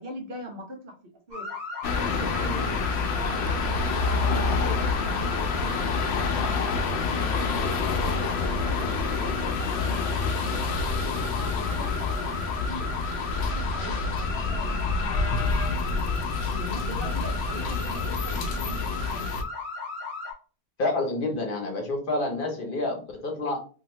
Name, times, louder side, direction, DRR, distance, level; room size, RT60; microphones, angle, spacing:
voice 1, 0.0-1.5 2.0-3.9 4.2-7.7 8.0-8.9 9.2-10.6 11.3-16.2 16.5-19.3, right 1 dB, 60° right, 4 dB, 0.9 m, -41 dB
sound 1, 1.3-20.3, left 4 dB, 45° right, 1.3 m, -36 dB
sound 2, 1.8-19.4, left 4 dB, 85° left, 0.8 m, -27 dB
voice 2, 20.8-23.6, left 2 dB, 55° left, 2 dB, 0.9 m, -28 dB
2.8 x 2.6 x 3.0 m, 0.38 s
omnidirectional pair, 1.1 m